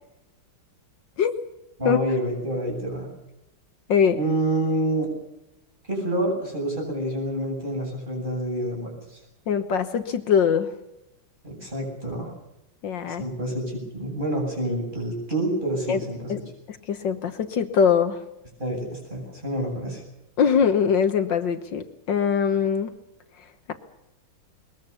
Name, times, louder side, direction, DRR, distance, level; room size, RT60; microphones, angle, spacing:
voice 1, 1.8-3.1 4.2-5.1 5.9-9.2 11.4-12.3 13.2-16.3 18.6-20.0, right 1 dB, 20° right, 0 dB, 8.2 m, -28 dB
voice 2, 3.9-4.2 9.5-10.7 12.8-13.2 15.9-16.0 16.3-16.4 16.7-18.2 20.4-22.9, left 7 dB, 65° left, 8 dB, 1.8 m, -22 dB
21.5 x 21.0 x 7.0 m, 0.90 s
omnidirectional pair, 2.2 m